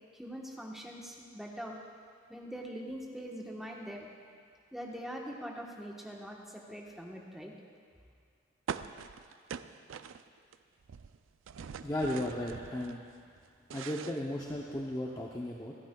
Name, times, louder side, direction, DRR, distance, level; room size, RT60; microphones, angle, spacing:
voice 1, 0.1-1.8 2.3-4.0 4.7-7.5, equal, ahead, -2 dB, 1.1 m, -43 dB
sound 1, 8.7-10.6 10.8-13.0 13.4-14.9, right 7 dB, 85° right, 0.4 m, -43 dB
voice 2, 11.8-13.0 13.7-15.7, left 1 dB, 20° left, -2 dB, 0.6 m, -35 dB
26.5 x 10.0 x 2.3 m, 2.1 s
head